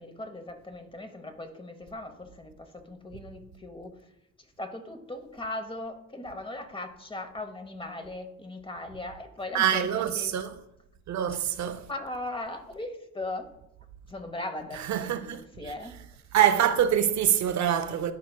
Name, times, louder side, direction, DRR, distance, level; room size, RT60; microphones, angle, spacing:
voice 1, 0.0-3.9 4.6-9.9 10.1-10.3 11.3-11.4 11.9-13.5 14.1-16.1, left 2 dB, 15° left, 0.9 m, -38 dB
voice 2, 9.5-10.5 11.1-11.9 14.7-15.7 16.3-18.1, right 10 dB, 65° right, 0.6 m, -25 dB
11.0 x 4.7 x 2.2 m
cardioid pair, 90°, 30 cm